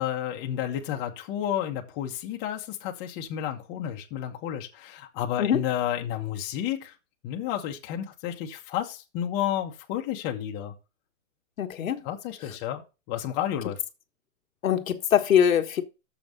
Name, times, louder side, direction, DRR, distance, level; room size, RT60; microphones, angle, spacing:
voice 1, 0.0-6.9 7.2-10.7 12.0-12.8 13.1-13.8, left 11 dB, 25° left, 1.2 m, -31 dB
voice 2, 11.6-12.0 12.5-12.6 14.6-15.8, left 9 dB, 80° left, 1.4 m, -23 dB
7.0 x 5.4 x 6.5 m
hypercardioid pair, 155°, 40 cm